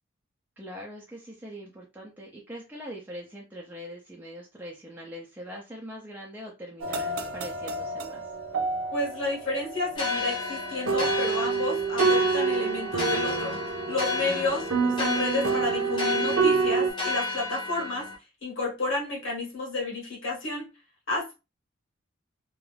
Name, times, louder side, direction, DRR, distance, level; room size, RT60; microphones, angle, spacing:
voice 1, 0.6-8.2 14.2-14.6, equal, 10° right, 0.4 m, -42 dB
sound 1, 6.8-16.9, right 5 dB, 90° right, 0.5 m, -28 dB
voice 2, 8.9-13.6 13.9-18.1 18.4-20.7 21.1-21.3, left 2 dB, 70° left, 1.1 m, -31 dB
sound 2, 9.9-18.1, left 3 dB, 25° left, 0.8 m, -32 dB
2.4 x 2.2 x 3.2 m
head